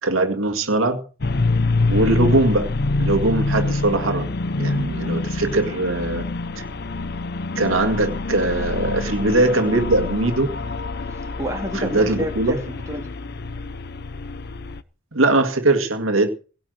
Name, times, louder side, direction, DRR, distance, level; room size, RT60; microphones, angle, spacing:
voice 1, 0.0-1.0 1.9-4.3 4.6-6.2 7.6-10.5 11.7-12.6 15.1-16.3, right 2 dB, 85° right, 2.0 m, -21 dB
sound 1, 1.2-14.8, left 3 dB, 55° left, 0.7 m, -26 dB
voice 2, 11.1-13.1, right 1 dB, 15° right, 2.4 m, -30 dB
17.0 x 5.9 x 7.9 m
head